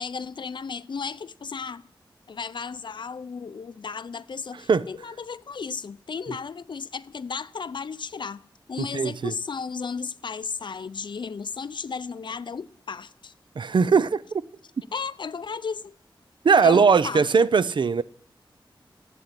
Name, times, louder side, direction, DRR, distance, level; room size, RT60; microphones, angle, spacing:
voice 1, 0.0-1.8 2.3-8.4 8.7-13.3 14.9-15.9 16.6-17.3, left 5 dB, 60° left, 0.6 m, -34 dB
voice 2, 8.9-9.3 13.6-14.2 16.4-18.0, right 5 dB, 65° right, 0.5 m, -19 dB
14.5 x 8.3 x 9.6 m
wide cardioid pair, 115°, 9 cm